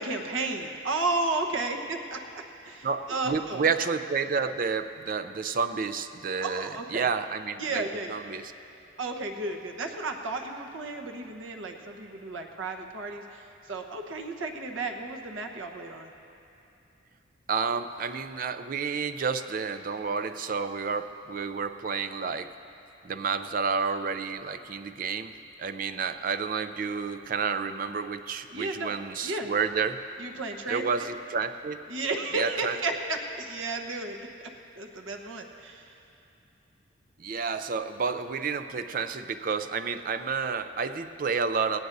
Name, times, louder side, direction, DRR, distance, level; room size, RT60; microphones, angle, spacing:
voice 1, 0.0-3.6 6.4-7.1 7.6-8.2 9.0-16.1 28.5-28.9 29.2-29.5 30.2-31.1 31.9-34.2 34.8-36.0, right 2 dB, 80° right, 3 dB, 1.1 m, -33 dB
voice 2, 2.8-8.5 17.5-22.5 23.0-30.0 30.7-31.8 32.3-32.8 37.2-41.8, right 5 dB, 45° right, 10 dB, 0.4 m, -30 dB
18.5 x 17.5 x 2.7 m, 2.7 s
head